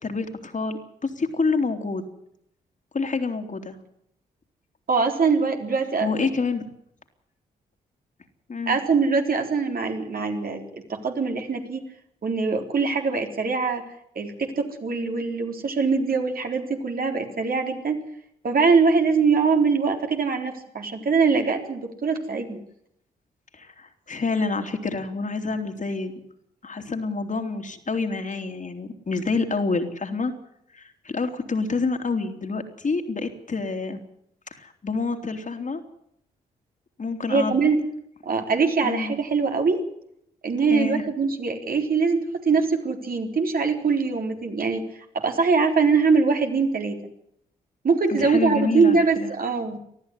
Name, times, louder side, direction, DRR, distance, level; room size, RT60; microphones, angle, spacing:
voice 1, 0.0-2.0 2.9-3.8 6.0-6.7 8.5-8.8 23.5-26.2 26.6-30.3 30.7-34.0 34.5-35.8 37.0-37.6 38.8-39.1 40.7-41.0 48.1-49.3, left 4 dB, 40° left, 5 dB, 3.3 m, -27 dB
voice 2, 4.9-6.3 8.7-11.8 12.2-13.8 14.2-18.0 18.4-22.6 37.3-37.8 38.2-39.8 40.4-44.9 45.1-47.0 47.8-49.8, right 4 dB, 50° right, 3 dB, 3.9 m, -23 dB
20.0 x 13.5 x 9.9 m, 0.73 s
hypercardioid pair, 40°, 19 cm